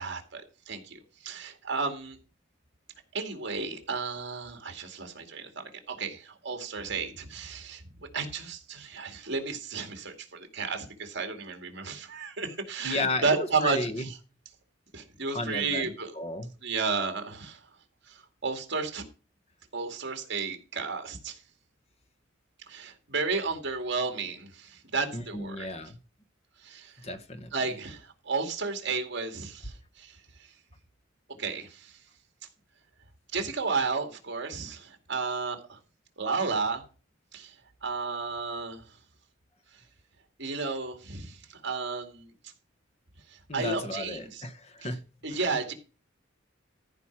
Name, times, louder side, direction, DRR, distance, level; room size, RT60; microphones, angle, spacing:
voice 1, 0.0-2.2 3.1-7.8 8.1-14.1 14.9-16.1 16.6-17.6 18.1-19.0 19.7-21.4 22.7-25.7 26.6-26.9 27.5-30.2 31.4-32.0 33.3-35.8 36.2-36.8 37.3-37.5 37.8-38.8 40.4-42.3 43.3-44.4 45.2-45.7, right 4 dB, 60° right, 5 dB, 2.2 m, -33 dB
voice 2, 12.8-14.1 15.3-16.5 25.1-26.0 27.0-27.5 28.9-29.0 43.5-45.0 45.3-45.4, left 2 dB, 35° left, 9 dB, 1.1 m, -34 dB
14.0 x 5.1 x 5.9 m, 0.34 s
head